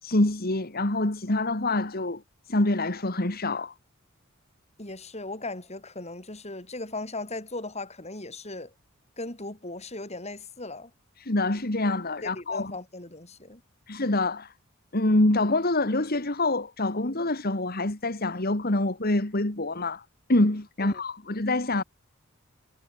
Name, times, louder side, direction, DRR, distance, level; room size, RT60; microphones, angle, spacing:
voice 1, 0.0-3.7 11.2-12.7 13.9-14.5 14.9-20.0 20.3-21.8, left 2 dB, 45° left, 2.1 m, -26 dB
voice 2, 4.8-8.7 9.2-10.9 12.2-13.6 20.8-21.0, left 2 dB, 30° left, 6.7 m, -38 dB
head